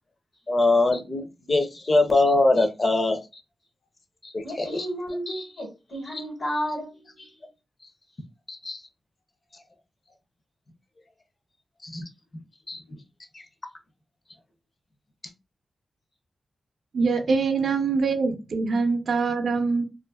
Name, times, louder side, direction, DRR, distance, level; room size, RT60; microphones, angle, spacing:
voice 1, 0.5-3.2 4.2-4.9 5.3-5.4 8.5-8.8 11.8-12.0 12.7-12.8 13.3-13.4, left 2 dB, 40° left, 0.5 m, -23 dB
voice 2, 4.4-7.4, equal, 70° left, 1.3 m, -32 dB
voice 3, 16.9-19.8, right 4 dB, 75° right, 0.5 m, -24 dB
2.5 x 2.4 x 2.3 m
wide cardioid pair, 135°, 0 cm